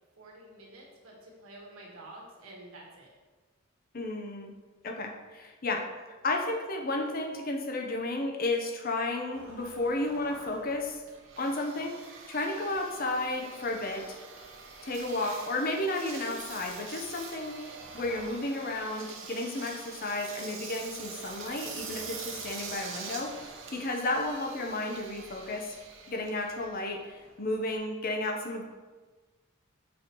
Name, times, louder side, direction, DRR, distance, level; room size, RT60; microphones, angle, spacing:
voice 1, 0.2-3.1, right 2 dB, 85° right, -2 dB, 1.4 m, -49 dB
voice 2, 3.9-4.5 4.8-5.9 6.2-11.0 11.4-14.2 14.8-23.4 23.7-25.8 26.1-28.6, left 2 dB, 45° left, 3 dB, 0.6 m, -33 dB
Engine, 9.3-27.8, right 4 dB, 65° right, 0.8 m, -45 dB
6.4 x 5.3 x 2.9 m, 1.3 s
head